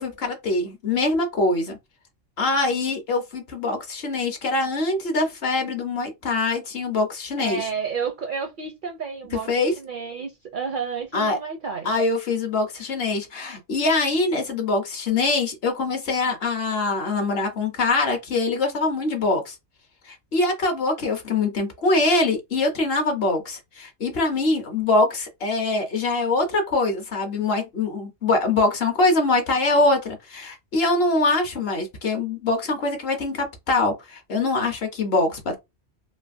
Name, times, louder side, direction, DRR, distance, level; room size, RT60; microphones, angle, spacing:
voice 1, 0.0-1.8 2.4-7.7 9.5-9.7 11.1-11.4 11.8-19.6 20.1-35.6, left 3 dB, 60° left, 1.0 m, -23 dB
voice 2, 7.4-9.5 9.8-11.9 12.8-12.9, right 5 dB, 60° right, 0.6 m, -31 dB
3.2 x 2.5 x 2.5 m
omnidirectional pair, 1.2 m